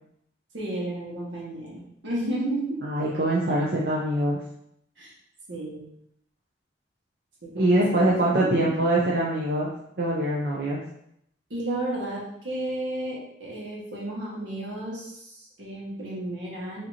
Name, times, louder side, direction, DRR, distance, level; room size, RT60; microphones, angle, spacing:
voice 1, 0.5-2.8 5.0-5.1 5.5-5.9 7.4-8.8 11.5-16.9, right 1 dB, 85° right, -5 dB, 1.5 m, -33 dB
voice 2, 2.8-4.4 7.5-9.7 10.0-10.8, right 1 dB, 60° right, -5 dB, 0.6 m, -23 dB
5.1 x 2.9 x 2.8 m, 0.74 s
head